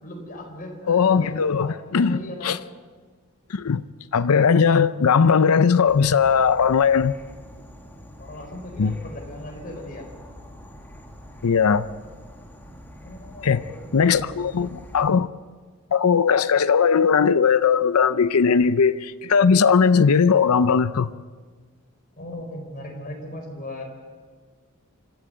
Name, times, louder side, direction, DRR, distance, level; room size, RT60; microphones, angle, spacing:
voice 1, 0.0-2.6 8.2-10.1 13.0-14.5 22.2-23.8, left 1 dB, 40° left, 4.9 m, -38 dB
voice 2, 0.9-2.6 3.5-3.8 4.1-7.1 8.8-9.0 11.4-11.9 13.4-13.6 13.9-15.3 15.9-21.1, left 6 dB, 85° left, 0.6 m, -19 dB
Insect / Frog, 5.9-15.1, equal, 10° left, 2.0 m, -44 dB
25.5 x 13.5 x 8.0 m
head